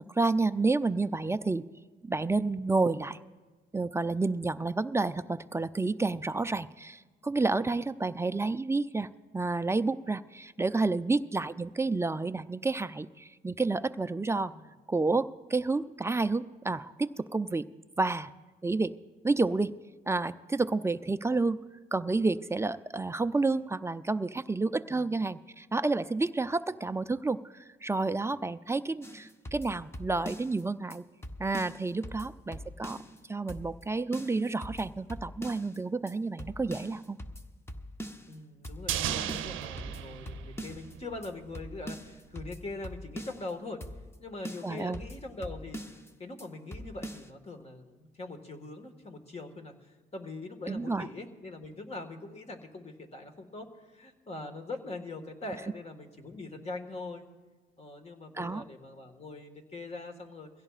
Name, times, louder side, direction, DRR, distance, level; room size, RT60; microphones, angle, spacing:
voice 1, 0.0-1.6 2.1-3.2 3.7-14.5 14.9-17.7 18.0-18.3 18.6-18.9 19.2-19.7 20.1-21.6 21.9-31.0 31.4-33.0 33.3-37.2 44.6-45.0 50.7-51.1 58.3-58.6, right 3 dB, 15° right, 12 dB, 0.4 m, -30 dB
sound 1, 29.0-30.6 30.9-31.0 31.2-33.2 33.5-33.9 34.1-35.8 36.1-36.2 36.4-38.4 38.6-39.0 39.3-40.9 41.2-41.3 41.5-43.5 43.8-44.2 44.4-46.1 46.4-46.5 46.7-47.3, equal, 10° left, 0.9 m, -43 dB
voice 2, 38.3-43.8 44.2-57.2 57.8-60.5, left 2 dB, 30° left, 4 dB, 1.7 m, -42 dB
sound 2, 38.9-41.3 41.5-41.6, right 11 dB, 90° right, 0.7 m, -35 dB
22.5 x 16.5 x 2.4 m, 1.3 s
cardioid pair, 90°, 20 cm